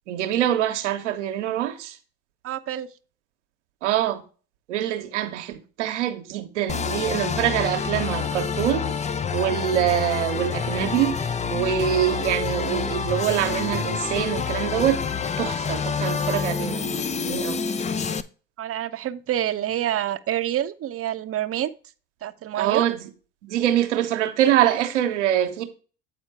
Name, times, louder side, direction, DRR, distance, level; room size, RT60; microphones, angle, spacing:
voice 1, 0.1-2.0 3.8-4.2 4.7-15.0 15.4-17.6 22.5-23.0 23.4-25.6, right 11 dB, 85° right, 1.1 m, -24 dB
voice 2, 2.4-2.9 18.6-21.7 22.2-22.9, right 12 dB, 40° right, 0.8 m, -27 dB
sound 1, 6.7-18.2, left 6 dB, 20° left, 0.6 m, -27 dB
8.6 x 4.4 x 4.6 m
hypercardioid pair, 70°, 35 cm